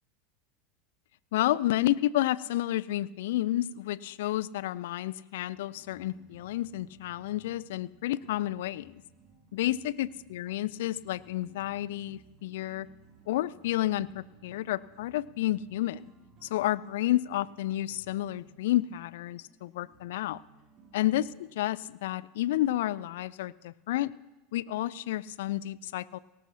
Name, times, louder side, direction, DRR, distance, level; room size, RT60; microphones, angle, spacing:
voice 1, 1.3-9.0 9.5-12.9 13.3-16.1 16.4-20.4 20.9-24.1 24.5-26.2, left 14 dB, 60° left, 20 dB, 0.4 m, -30 dB
sound 1, 5.5-21.4, right 4 dB, 40° right, 4.7 m, -59 dB
18.5 x 17.5 x 2.9 m, 1.1 s
figure-of-eight pair, 80°, 0 cm